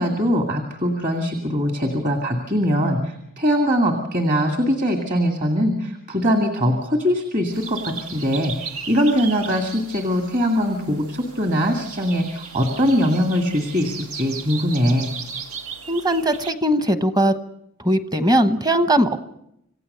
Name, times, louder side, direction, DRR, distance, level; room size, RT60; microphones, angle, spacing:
voice 1, 0.0-15.1, equal, 35° right, 4 dB, 2.2 m, -22 dB
sound 1, 7.5-16.5, right 5 dB, 80° right, 1.9 m, -37 dB
voice 2, 15.9-17.3 17.8-19.3, right 1 dB, 20° right, 10 dB, 1.0 m, -19 dB
27.5 x 16.5 x 6.8 m, 0.78 s
head